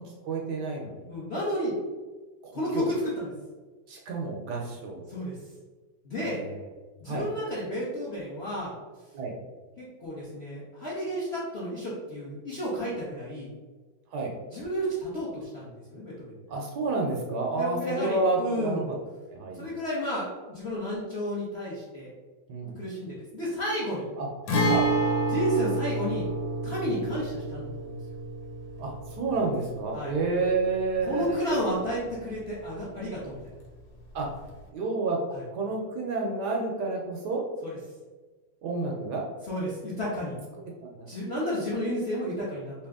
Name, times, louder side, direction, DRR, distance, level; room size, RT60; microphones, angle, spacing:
voice 1, 0.2-1.1 2.7-2.9 3.9-5.0 6.2-6.6 7.1-7.3 9.1-9.3 14.1-14.3 16.5-18.9 19.3-19.7 22.5-22.8 24.2-24.3 24.7-24.9 26.9-27.0 28.8-31.4 34.1-34.3 34.7-35.2 35.5-37.4 38.6-39.2 40.8-41.1, right 3 dB, 70° right, 0 dB, 1.1 m, -30 dB
voice 2, 1.1-1.7 2.5-3.3 5.1-5.3 6.0-6.4 7.0-8.7 9.8-13.5 14.5-16.4 17.6-18.9 19.5-22.1 22.8-24.1 25.3-26.3 26.6-27.9 29.9-30.1 31.0-33.4 35.3-35.4 37.6-37.8 39.5-40.4 41.1-42.7, equal, 50° left, -7 dB, 0.8 m, -32 dB
Guitar, 24.5-32.1 32.4-32.5 34.5-34.6, right 1 dB, 90° left, 1.6 m, -30 dB
3.3 x 2.8 x 3.5 m, 1.3 s
omnidirectional pair, 2.1 m